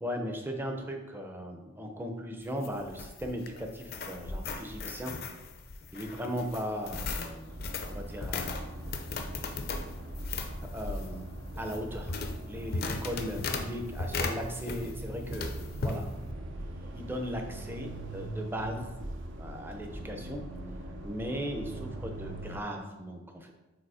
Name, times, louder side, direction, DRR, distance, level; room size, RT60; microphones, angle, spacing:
voice 1, 0.0-5.1 5.9-7.6 7.9-8.6 10.7-11.3 11.6-12.2 12.4-16.1 16.6-16.7 16.9-19.0 19.4-20.4 21.0-23.5, equal, 10° right, 4 dB, 0.5 m, -37 dB
sound 1, 2.4-15.0 15.3-16.0, left 3 dB, 45° left, 0.5 m, -37 dB
sound 2, 7.5-22.6, right 1 dB, 60° right, 0.6 m, -41 dB
5.0 x 4.0 x 4.8 m, 1.1 s
head